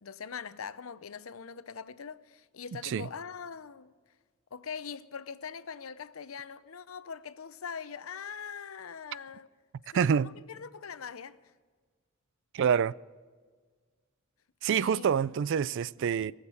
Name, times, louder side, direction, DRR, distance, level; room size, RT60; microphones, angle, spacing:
voice 1, 0.0-3.9 4.5-9.5 9.9-11.4 14.7-15.1, left 6 dB, 80° left, 0.7 m, -42 dB
voice 2, 9.9-10.3 12.5-13.0 14.6-16.3, right 7 dB, 60° right, 0.3 m, -27 dB
21.5 x 7.5 x 8.4 m
head